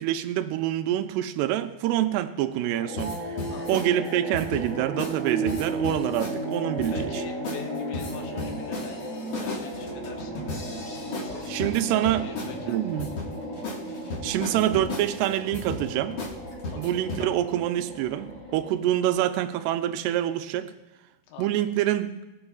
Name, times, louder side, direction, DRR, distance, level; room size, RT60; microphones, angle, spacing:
voice 1, 0.0-3.2 3.7-7.2 11.5-12.2 12.7-13.1 14.2-16.2 16.8-20.7 21.4-22.1, right 12 dB, 80° right, 8 dB, 2.5 m, -26 dB
sound 1, 2.6-19.2, right 1 dB, 15° left, 1.6 m, -35 dB
sound 2, 3.0-3.9 4.3-4.7 5.0-5.2 5.5-6.4 6.8-7.2 7.4-7.6 7.9-12.6 13.0-13.3 13.6-13.8 14.1-15.1 15.5-15.8 16.2-16.3 16.6-17.2, left 2 dB, 65° left, 1.2 m, -35 dB
voice 2, 3.5-3.8 6.9-9.0 9.4-13.3 16.7-17.4 21.3-21.5, left 7 dB, 85° left, 3 dB, 3.2 m, -43 dB
sound 3, 10.8-11.7 12.1-13.0 13.4-16.6, left 2 dB, 45° left, 1.8 m, -48 dB
21.0 x 7.8 x 2.4 m, 1.1 s
omnidirectional pair, 5.0 m